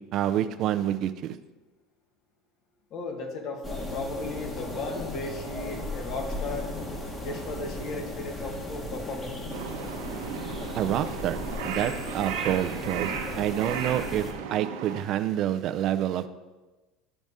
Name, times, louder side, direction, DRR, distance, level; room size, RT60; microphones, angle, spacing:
voice 1, 0.1-1.4 10.7-11.4 11.7-13.1 13.4-14.2 14.5-16.3, right 11 dB, 50° right, 10 dB, 0.5 m, -27 dB
voice 2, 2.9-6.7 7.2-9.4, left 3 dB, 55° left, 2 dB, 1.6 m, -36 dB
sound 1, 3.6-14.3, left 1 dB, 20° left, 1.4 m, -36 dB
Crow, 9.5-15.0, right 7 dB, 85° right, 0.9 m, -35 dB
12.0 x 4.0 x 3.6 m, 1.2 s
supercardioid pair, 115°, 0 cm